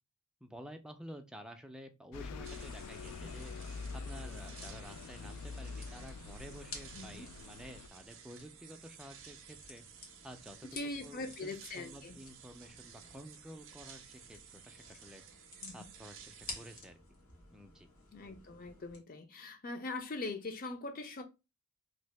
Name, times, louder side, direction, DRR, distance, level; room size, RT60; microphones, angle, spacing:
voice 1, 0.4-3.5 3.9-9.8 10.2-15.2 15.7-17.0 17.5-17.9, equal, 5° right, 0.3 m, -51 dB
Bus, 2.1-7.9, left 4 dB, 85° left, 0.3 m, -45 dB
sound 1, 2.4-16.8, right 8 dB, 60° right, 0.6 m, -55 dB
sound 2, 2.8-19.0, left 3 dB, 70° left, 1.0 m, -54 dB
voice 2, 6.9-7.3 10.6-12.2 15.6-15.7 18.1-21.2, left 2 dB, 40° left, 0.6 m, -42 dB
2.8 x 2.7 x 3.1 m
head